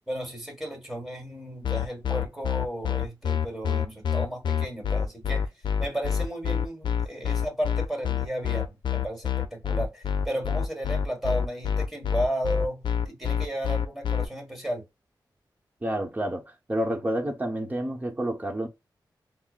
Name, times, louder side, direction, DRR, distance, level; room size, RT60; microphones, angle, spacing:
voice 1, 0.1-5.5 5.8-14.8, right 1 dB, ahead, 1.6 m, -34 dB
sound 1, 1.6-14.2, left 8 dB, 85° left, 0.5 m, -26 dB
voice 2, 15.8-18.7, right 1 dB, 20° right, 1.0 m, -29 dB
5.6 x 2.1 x 2.4 m
wide cardioid pair, 100°, 8 cm